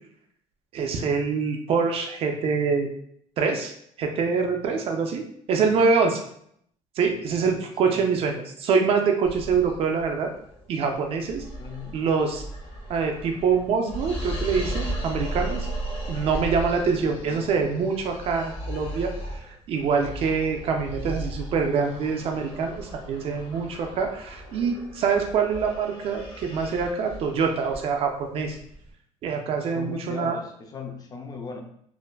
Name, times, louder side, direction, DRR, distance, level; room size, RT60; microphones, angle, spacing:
voice 1, 0.7-2.9 3.4-3.7 4.0-6.2 7.0-10.3 10.7-11.4 11.9-12.4 12.9-15.7 16.1-19.1 19.7-28.6 29.2-30.4, right 5 dB, 50° right, 3 dB, 0.4 m, -25 dB
sound 1, 9.2-28.9, right 1 dB, 45° left, 0.9 m, -36 dB
voice 2, 11.6-11.9 16.9-17.4 29.7-31.6, left 5 dB, 30° left, 3 dB, 0.4 m, -38 dB
3.3 x 2.1 x 2.2 m, 0.66 s
cardioid pair, 140°, 13 cm